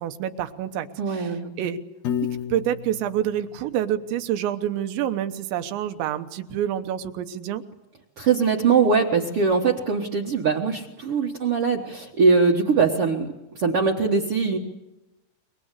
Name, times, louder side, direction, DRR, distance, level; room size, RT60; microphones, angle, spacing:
voice 1, 0.0-1.3 1.6-1.8 2.5-7.6, right 10 dB, 90° right, 8 dB, 3.5 m, -27 dB
voice 2, 1.0-1.5 8.2-13.3 13.5-14.6, right 5 dB, 70° right, 0 dB, 1.3 m, -21 dB
Piano, 2.0-4.3, left 9 dB, 60° left, 1.9 m, -32 dB
27.5 x 23.5 x 8.3 m, 1.0 s
omnidirectional pair, 5.0 m